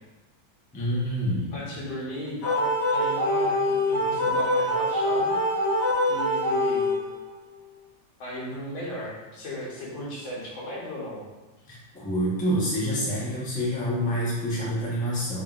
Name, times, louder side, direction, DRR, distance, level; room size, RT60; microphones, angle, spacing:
voice 1, 0.7-1.6 11.6-15.4, equal, 10° left, -7 dB, 0.3 m, -27 dB
voice 2, 1.5-5.4 6.1-6.9 8.2-11.2, equal, 90° left, -5 dB, 1.8 m, -36 dB
sound 1, 2.4-7.3, left 1 dB, 40° left, 1.0 m, -24 dB
3.8 x 3.6 x 2.4 m, 1.2 s
omnidirectional pair, 2.0 m